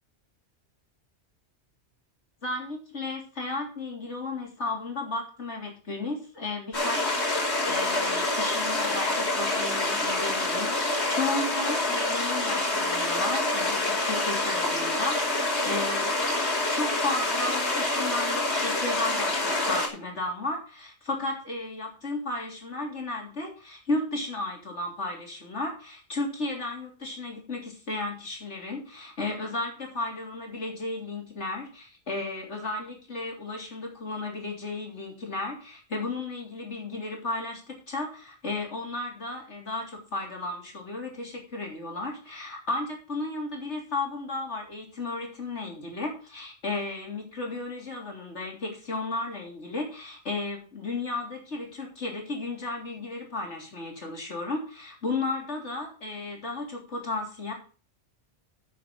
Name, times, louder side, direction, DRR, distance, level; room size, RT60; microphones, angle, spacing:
voice 1, 2.4-16.4 16.7-57.5, left 2 dB, 85° left, 0 dB, 3.8 m, -34 dB
sound 1, 6.7-19.9, left 2 dB, 70° left, 5.5 m, -27 dB
9.2 x 7.9 x 6.2 m, 0.37 s
omnidirectional pair, 1.2 m